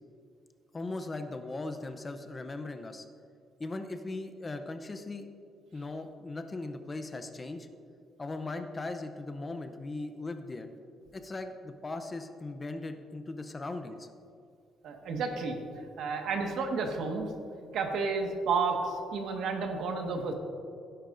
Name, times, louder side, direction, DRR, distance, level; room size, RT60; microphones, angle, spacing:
voice 1, 0.7-3.1 3.6-5.3 5.7-7.7 8.2-10.7 11.1-14.1, left 2 dB, 20° left, 7 dB, 0.6 m, -38 dB
voice 2, 14.8-15.6 16.0-17.3 17.7-20.3, right 4 dB, 70° right, 3 dB, 1.5 m, -31 dB
17.5 x 10.5 x 2.6 m, 2.4 s
cardioid pair, 155°, 0 cm